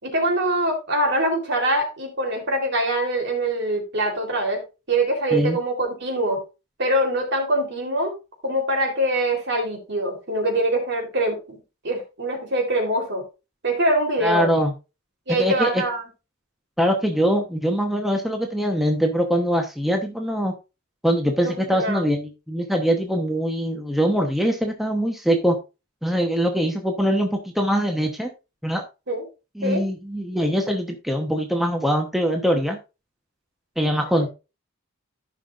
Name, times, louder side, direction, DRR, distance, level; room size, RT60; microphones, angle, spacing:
voice 1, 0.0-4.6 4.9-6.4 6.8-8.1 8.4-11.6 11.8-13.2 13.6-14.5 15.3-16.0 21.4-22.0 29.1-29.2 29.6-29.8, right 1 dB, 55° right, 2 dB, 3.5 m, -23 dB
voice 2, 14.2-14.7 15.3-15.8 16.8-20.5 21.0-25.6 26.0-28.3 28.6-28.8 29.6-32.8 33.8-34.3, equal, ahead, 3 dB, 1.0 m, -22 dB
14.5 x 5.7 x 2.5 m, 0.28 s
head